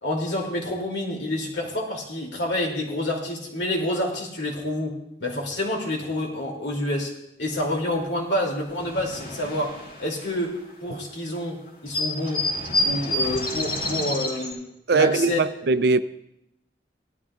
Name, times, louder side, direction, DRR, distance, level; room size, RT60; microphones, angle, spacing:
voice 1, 0.0-12.5 12.8-15.5, left 1 dB, 80° left, 2.7 m, -28 dB
sound 1, 8.1-8.2 8.4-11.0 11.4-11.5 11.7-14.5, left 1 dB, 65° left, 3.8 m, -28 dB
voice 2, 14.9-16.0, right 4 dB, 65° right, 0.5 m, -20 dB
18.5 x 13.0 x 2.4 m
head